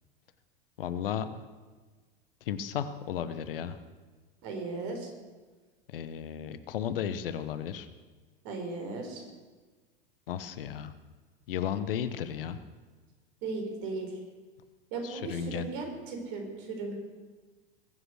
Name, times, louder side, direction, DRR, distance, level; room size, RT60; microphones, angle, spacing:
voice 1, 0.8-1.4 2.4-3.8 5.9-7.9 10.3-10.9 11.5-12.6 15.0-15.7, left 9 dB, 70° left, 12 dB, 1.1 m, -34 dB
voice 2, 4.4-5.1 8.4-9.3 13.4-14.2 14.9-17.0, right 3 dB, 55° right, 3 dB, 4.4 m, -36 dB
21.5 x 8.1 x 6.4 m, 1.3 s
hypercardioid pair, 90°, 29 cm